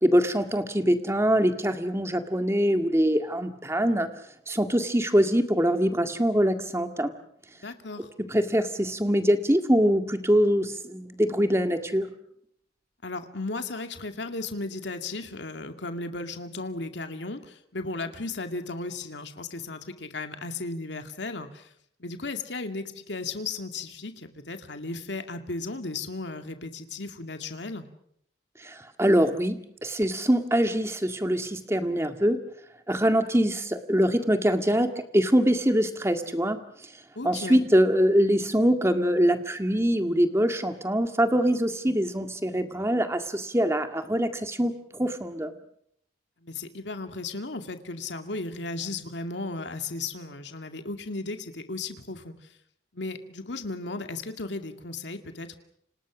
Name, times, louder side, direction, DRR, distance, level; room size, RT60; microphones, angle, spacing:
voice 1, 0.0-4.1 4.5-7.1 8.2-12.1 28.6-32.4 32.9-36.6 37.2-45.5, equal, 15° right, 7 dB, 1.9 m, -23 dB
voice 2, 7.6-8.1 13.0-21.7 22.0-27.9 37.2-37.6 46.4-52.3 52.9-55.6, left 3 dB, 80° left, 6 dB, 2.3 m, -35 dB
30.0 x 26.5 x 6.3 m, 0.71 s
head